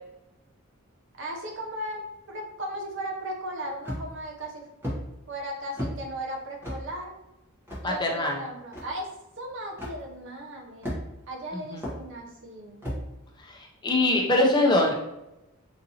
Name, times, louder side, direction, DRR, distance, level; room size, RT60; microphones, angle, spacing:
voice 1, 1.1-2.0 2.3-4.7 5.3-7.2 7.8-9.1 9.4-11.0 11.3-12.8, right 1 dB, 55° right, 0 dB, 0.7 m, -36 dB
sound 1, 3.8-4.2 4.8-5.0 5.8-6.0 6.6-6.8 7.7-7.8 8.7-8.8 9.8-10.0 10.8-11.2 11.8-12.0 12.8-13.0, equal, 10° right, 0.8 m, -32 dB
voice 2, 7.8-8.4 11.5-11.9 13.4-14.9, left 1 dB, 20° left, -1 dB, 0.5 m, -23 dB
3.9 x 2.6 x 2.7 m, 0.92 s
head